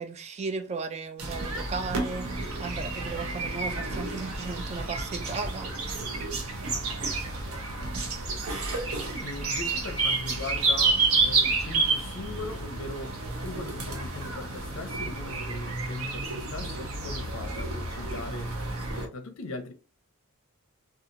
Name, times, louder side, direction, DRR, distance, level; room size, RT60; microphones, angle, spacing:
voice 1, 0.0-5.7, right 4 dB, 30° right, 0.3 m, -35 dB
sound 1, 1.2-19.1, right 3 dB, 70° right, 0.7 m, -30 dB
voice 2, 7.5-7.9 9.2-18.6 18.9-19.7, left 3 dB, 60° left, 0.5 m, -40 dB
2.8 x 2.3 x 2.5 m
head